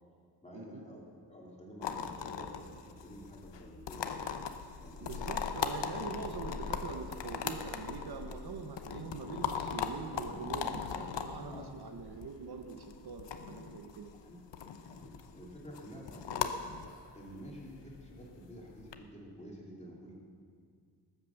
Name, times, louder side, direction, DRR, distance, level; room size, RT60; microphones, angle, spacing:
voice 1, 0.4-1.0 1.3-5.3 11.4-11.7 14.2-14.4 14.9-16.9 17.1-20.1, equal, 15° left, -3 dB, 2.8 m, -50 dB
sound 1, 1.8-19.0, left 7 dB, 85° left, 0.9 m, -39 dB
voice 2, 5.0-14.1, right 5 dB, 65° right, 5 dB, 1.1 m, -44 dB
19.0 x 8.4 x 7.1 m, 2.1 s
wide cardioid pair, 180°, 42 cm